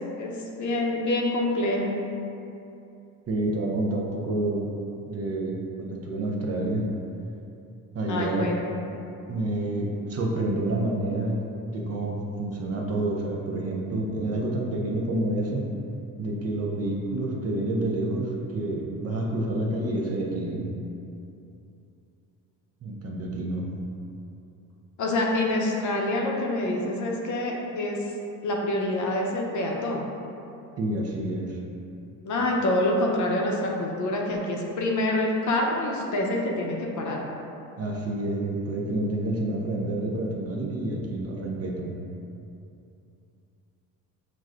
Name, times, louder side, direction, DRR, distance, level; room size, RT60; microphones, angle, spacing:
voice 1, 0.6-2.0 8.1-8.8 25.0-28.0 28.4-30.1 32.2-37.2, left 1 dB, 60° left, -1 dB, 0.7 m, -26 dB
voice 2, 3.3-4.7 5.1-6.9 7.9-8.6 9.3-11.4 11.7-15.7 16.2-20.7 22.8-23.7 30.8-31.6 37.8-42.0, right 1 dB, 45° right, -1 dB, 0.6 m, -28 dB
5.8 x 2.2 x 2.4 m, 2.7 s
cardioid pair, 90°, 35 cm